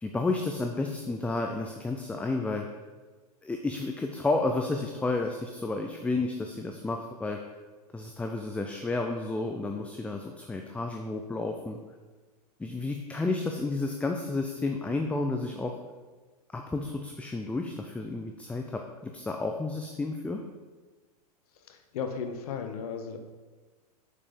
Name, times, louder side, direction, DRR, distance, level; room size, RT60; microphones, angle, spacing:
voice 1, 0.0-2.7 3.4-7.4 7.9-11.8 12.6-15.7 16.5-20.4, left 3 dB, 5° left, 3 dB, 0.4 m, -31 dB
voice 2, 21.7-23.2, left 6 dB, 65° left, 6 dB, 1.1 m, -35 dB
6.5 x 5.6 x 5.2 m, 1.3 s
hypercardioid pair, 110°, 20 cm